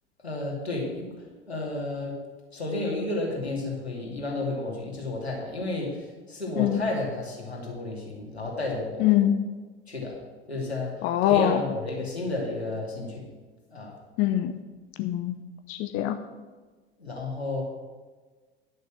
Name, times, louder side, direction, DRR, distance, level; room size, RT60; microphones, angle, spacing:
voice 1, 0.2-2.2 2.5-9.2 9.9-10.1 10.5-13.3 13.7-13.9 17.0-17.6, left 2 dB, 85° left, -2 dB, 2.7 m, -32 dB
voice 2, 9.0-9.4 11.0-11.6 14.2-14.5 15.0-15.4 15.7-16.2, left 12 dB, 40° left, 8 dB, 0.7 m, -23 dB
11.0 x 6.6 x 6.4 m, 1.3 s
figure-of-eight pair, 75°, 31 cm